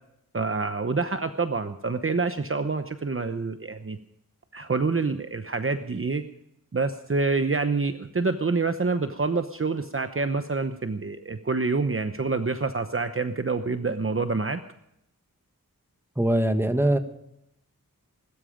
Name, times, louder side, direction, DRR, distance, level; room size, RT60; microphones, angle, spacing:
voice 1, 0.3-4.0 4.5-6.2 6.7-14.6, right 4 dB, 40° right, 9 dB, 0.9 m, -27 dB
voice 2, 16.2-17.0, right 1 dB, 5° right, 7 dB, 1.6 m, -22 dB
21.0 x 13.0 x 5.1 m, 0.79 s
wide cardioid pair, 75°, 35 cm